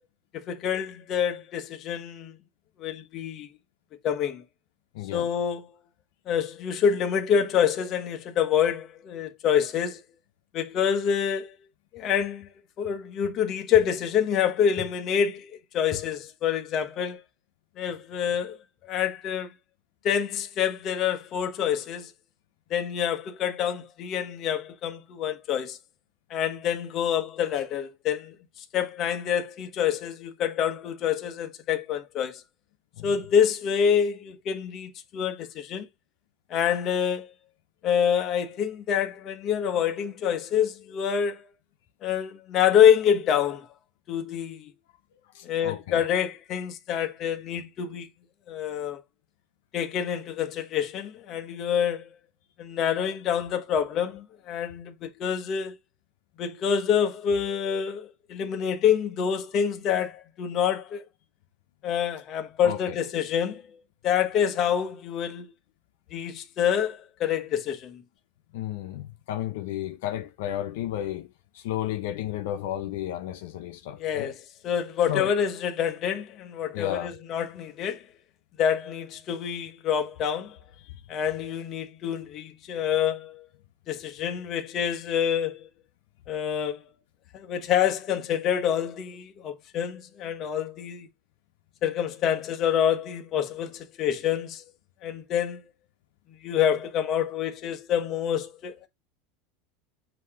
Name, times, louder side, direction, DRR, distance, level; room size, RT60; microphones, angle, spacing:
voice 1, 0.3-2.4 2.8-3.5 4.0-4.4 5.1-5.6 6.3-10.0 10.5-11.5 11.9-12.5 12.8-17.2 17.8-18.6 18.9-19.5 20.0-22.1 22.7-25.8 26.3-28.3 28.7-32.4 33.0-35.9 36.5-37.3 37.8-41.5 42.0-43.7 44.1-44.7 45.4-48.1 48.5-49.0 49.7-52.1 52.6-55.8 56.4-61.0 61.8-63.6 64.0-65.5 66.1-68.0 74.0-74.4 74.6-78.0 78.6-80.6 81.1-83.4 83.9-85.7 86.3-86.8 87.3-91.1 91.8-94.6 95.0-95.6 96.4-98.9, left 8 dB, 35° left, 1.1 m, -27 dB
voice 2, 4.9-5.3 33.0-33.1 45.3-46.0 62.6-62.8 68.5-71.3 71.5-74.3 75.1-75.3 76.7-77.1 80.9-81.0, left 12 dB, 75° left, 0.8 m, -33 dB
8.2 x 2.9 x 4.9 m
supercardioid pair, 160°, 0 cm